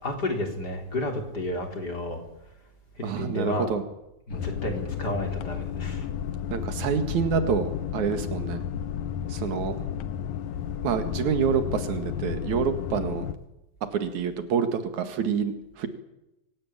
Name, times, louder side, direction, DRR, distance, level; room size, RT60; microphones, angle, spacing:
voice 1, 0.0-2.2 3.0-3.7 4.3-6.1, left 1 dB, 30° left, 4 dB, 4.1 m, -31 dB
voice 2, 3.0-3.8 6.5-8.6 9.3-9.8 10.8-13.3 13.9-15.9, right 6 dB, 75° right, 9 dB, 3.3 m, -27 dB
sound 1, 4.3-13.3, left 9 dB, 80° left, 2.5 m, -32 dB
25.0 x 16.5 x 8.9 m, 0.91 s
omnidirectional pair, 3.4 m